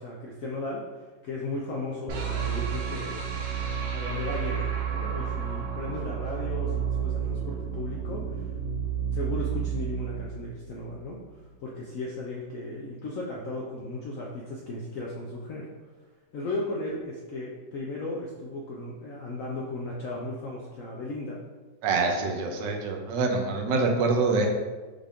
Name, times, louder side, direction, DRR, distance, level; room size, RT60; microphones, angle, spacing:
voice 1, 0.0-3.2 3.9-8.5 9.1-11.2 11.6-15.7 16.3-21.4, left 2 dB, 70° left, -3 dB, 0.8 m, -36 dB
sound 1, 2.1-11.2, right 8 dB, 65° right, 0.9 m, -31 dB
voice 2, 21.8-24.5, right 3 dB, 85° right, 3 dB, 1.3 m, -25 dB
5.4 x 2.5 x 3.4 m, 1.3 s
omnidirectional pair, 1.9 m